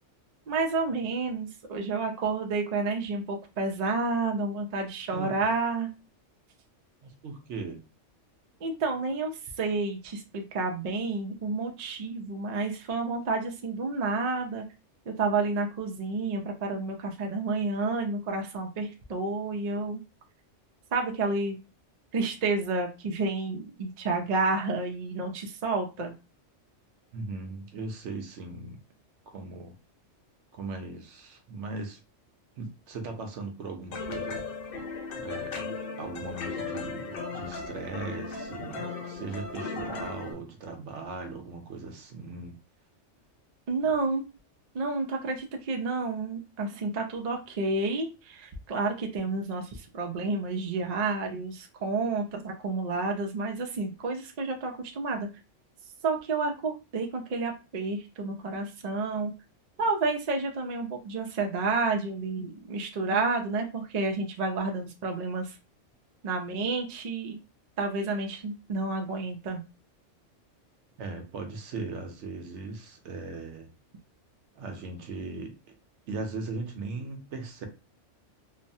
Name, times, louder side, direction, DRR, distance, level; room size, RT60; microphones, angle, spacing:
voice 1, 0.5-5.9 8.6-14.6 15.1-20.0 20.9-21.6 22.1-26.1 43.7-44.3 44.7-55.3 56.0-59.3 59.8-65.6 66.2-67.4 67.8-69.6, right 3 dB, 50° right, 2 dB, 0.5 m, -30 dB
voice 2, 5.1-5.5 7.0-7.8 27.1-28.8 29.3-29.7 30.5-32.0 32.6-34.4 35.1-42.6 71.0-73.7 74.6-75.6 76.1-77.7, right 3 dB, 75° right, 4 dB, 0.9 m, -38 dB
sound 1, 33.9-40.3, left 4 dB, 60° left, 0.7 m, -36 dB
3.0 x 2.0 x 2.6 m, 0.30 s
omnidirectional pair, 1.2 m